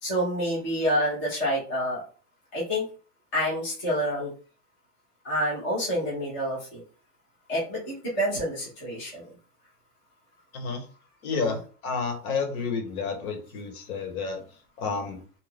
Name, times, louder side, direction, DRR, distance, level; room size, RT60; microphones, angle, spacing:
voice 1, 0.0-2.0 2.5-2.8 3.3-4.3 5.2-6.8 7.5-9.3 11.3-11.6, equal, 15° left, -7 dB, 0.3 m, -28 dB
voice 2, 10.5-10.8 11.2-14.4 14.8-15.2, left 5 dB, 70° left, 5 dB, 1.1 m, -30 dB
2.7 x 2.2 x 3.3 m, 0.37 s
supercardioid pair, 160°, 45 cm